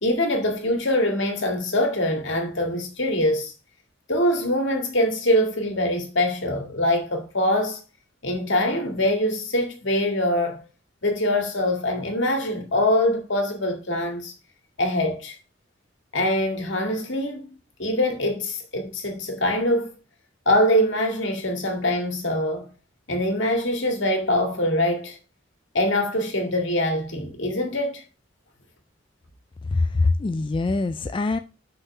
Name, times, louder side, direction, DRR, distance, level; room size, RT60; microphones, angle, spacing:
voice 1, 0.0-3.5 4.1-7.8 8.2-10.6 11.0-14.3 14.8-15.3 16.1-17.5 17.8-19.9 20.5-22.7 23.1-25.2 25.7-28.0, left 1 dB, 70° left, 2.1 m, -23 dB
voice 2, 29.7-31.4, left 3 dB, 25° left, 0.3 m, -23 dB
6.0 x 5.4 x 5.3 m
head